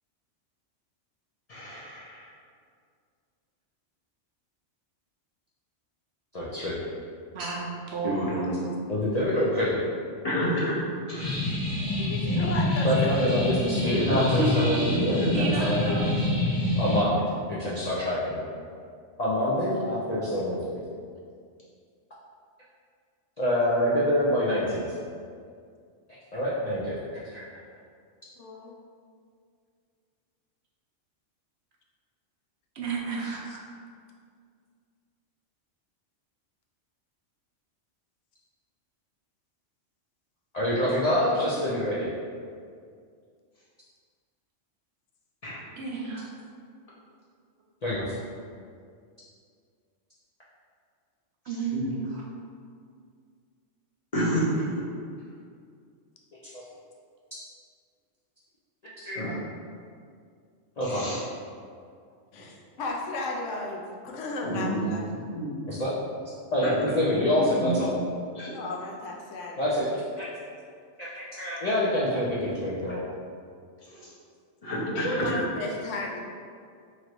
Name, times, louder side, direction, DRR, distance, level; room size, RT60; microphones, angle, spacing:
voice 1, 1.5-2.3 8.0-8.6 10.2-10.7 11.1-11.4 14.1-14.2 14.8-15.5 45.4-45.6 51.5-51.9 54.1-54.8 59.1-59.3 60.8-61.2 62.3-62.4 64.4-64.9 65.3-65.5 67.0-67.2 67.6-67.8 68.3-68.5 73.9-74.1 74.6-75.3, equal, 35° left, -7 dB, 0.9 m, -30 dB
voice 2, 6.3-6.8 8.9-9.8 12.8-16.0 16.8-17.2 17.5-18.4 19.2-20.8 23.4-24.9 26.1-27.4 40.5-42.1 47.8-48.1 56.5-56.6 59.0-59.2 60.8-61.0 65.7-65.9 66.5-67.9 69.6-69.9 70.2-70.3 71.0-73.0, left 1 dB, 50° left, -8 dB, 0.5 m, -26 dB
voice 3, 7.3-8.5 14.3-14.6 15.3-16.3 32.8-33.6 45.8-46.3 51.5-52.2, right 3 dB, 65° right, -2 dB, 0.8 m, -32 dB
sound 1, 11.2-17.0, left 1 dB, 10° left, 1.1 m, -26 dB
voice 4, 12.0-13.5 28.4-28.7 33.5-33.6 62.3-65.1 68.5-69.9 74.8-76.2, left 2 dB, 85° left, 0 dB, 0.9 m, -35 dB
3.1 x 2.6 x 4.4 m, 2.2 s
omnidirectional pair, 1.2 m